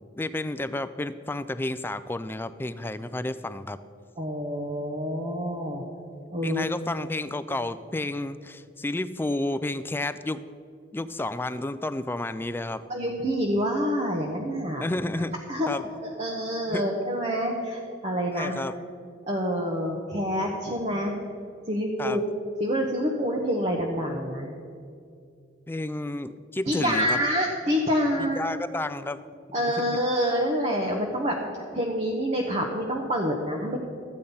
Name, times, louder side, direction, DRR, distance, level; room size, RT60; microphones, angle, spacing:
voice 1, 0.0-3.8 6.4-10.4 10.9-12.8 14.8-15.3 15.7-15.9 16.7-16.9 18.3-18.8 22.0-22.2 25.7-27.2 28.2-29.2 29.8-30.0, left 2 dB, 10° left, 13 dB, 0.3 m, -31 dB
voice 2, 4.2-5.8 6.3-6.6 12.9-14.9 15.5-15.7 16.0-18.5 19.3-21.1 21.7-22.2 22.6-24.5 26.7-28.6 29.5-31.4 31.7-33.8, equal, 35° right, -1 dB, 1.0 m, -27 dB
13.0 x 8.6 x 5.4 m, 2.4 s
head